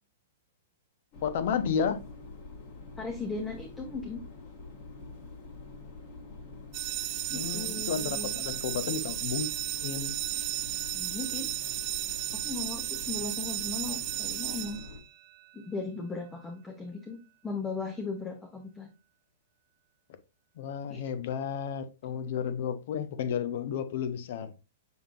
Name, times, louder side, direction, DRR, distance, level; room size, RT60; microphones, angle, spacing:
sound 1, 1.1-15.0, left 3 dB, 45° left, 1.8 m, -46 dB
voice 1, 1.2-2.0 7.3-9.5 9.8-10.2 20.6-24.5, left 7 dB, 60° left, 0.8 m, -32 dB
voice 2, 3.0-4.2 7.3-8.4 10.9-11.5 12.3-14.8 15.5-17.2 17.4-18.9 20.9-21.0 22.1-22.2, left 4 dB, 10° left, 0.7 m, -37 dB
sound 2, 6.7-15.4, right 14 dB, 40° right, 0.5 m, -34 dB
6.1 x 3.6 x 2.5 m
hypercardioid pair, 135°, 0 cm